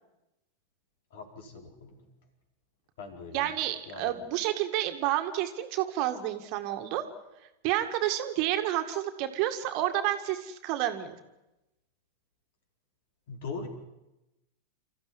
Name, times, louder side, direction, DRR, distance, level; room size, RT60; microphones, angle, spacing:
voice 1, 1.1-2.0 3.0-3.5 3.9-4.1 13.3-13.7, left 4 dB, 55° left, 4 dB, 4.4 m, -41 dB
voice 2, 3.3-7.0 7.6-11.2, right 13 dB, 45° right, 7 dB, 2.0 m, -30 dB
28.0 x 14.5 x 9.9 m, 0.98 s
figure-of-eight pair, 90°, 0 cm